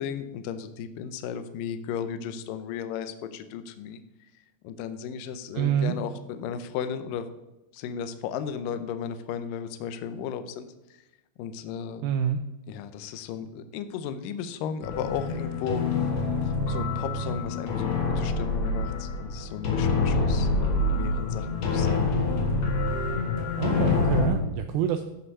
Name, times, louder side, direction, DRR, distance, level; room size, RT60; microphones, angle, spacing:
voice 1, 0.0-4.0 4.6-7.3 7.7-10.7 11.4-12.0 12.7-15.8 16.4-22.1, left 8 dB, 85° left, 10 dB, 1.9 m, -35 dB
voice 2, 5.5-6.0 12.0-12.4 23.6-25.0, right 9 dB, 85° right, 8 dB, 2.1 m, -26 dB
sound 1, 14.8-24.3, left 3 dB, 50° left, 2.5 m, -26 dB
13.5 x 5.8 x 5.4 m, 0.98 s
omnidirectional pair, 4.8 m